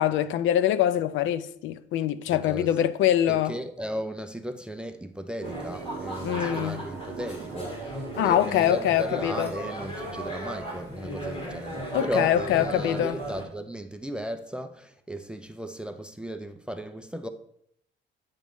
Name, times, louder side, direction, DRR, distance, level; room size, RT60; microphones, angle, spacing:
voice 1, 0.0-3.5 6.2-6.8 8.2-9.5 11.9-13.2, left 11 dB, 70° left, 0.4 m, -24 dB
voice 2, 2.3-2.7 3.3-17.3, equal, 5° right, 0.3 m, -35 dB
sound 1, 5.4-13.4, right 1 dB, 25° left, 1.8 m, -36 dB
sound 2, 5.4-9.7, right 8 dB, 75° right, 0.7 m, -42 dB
9.1 x 3.1 x 5.2 m
cardioid pair, 155°, 21 cm